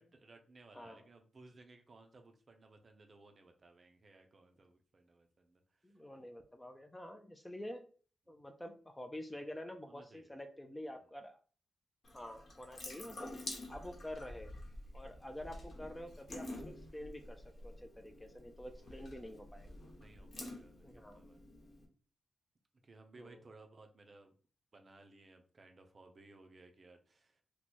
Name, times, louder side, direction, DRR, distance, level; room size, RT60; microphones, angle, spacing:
voice 1, 0.0-5.9 8.3-8.4 9.8-10.3 15.0-15.3 18.8-19.1 19.9-21.4 22.8-24.3 24.7-27.4, right 3 dB, 40° right, 5 dB, 0.5 m, -60 dB
voice 2, 0.7-1.1 5.8-7.9 8.3-11.4 12.1-13.3 13.7-14.6 14.9-19.7 20.8-21.2 23.2-23.4, left 1 dB, 10° left, 6 dB, 0.4 m, -48 dB
Water tap faucet / Sink (filling or washing) / Drip, 12.0-21.8, left 1 dB, 50° left, 1.1 m, -49 dB
2.9 x 2.3 x 4.1 m, 0.41 s
wide cardioid pair, 115°, 0 cm